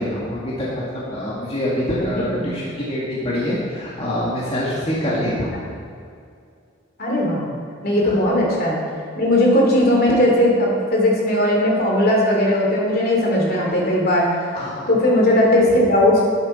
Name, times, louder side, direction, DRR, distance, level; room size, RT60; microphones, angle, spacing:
voice 1, 0.0-5.6 8.0-8.1 14.5-14.9, left 1 dB, 30° left, -7 dB, 2.1 m, -25 dB
voice 2, 1.9-2.5 5.0-5.2 5.5-5.6 7.0-7.5 7.8-8.8 9.2-14.3 14.9-16.2, left 1 dB, 50° left, -2 dB, 2.6 m, -18 dB
11.5 x 11.0 x 4.4 m, 2.3 s
head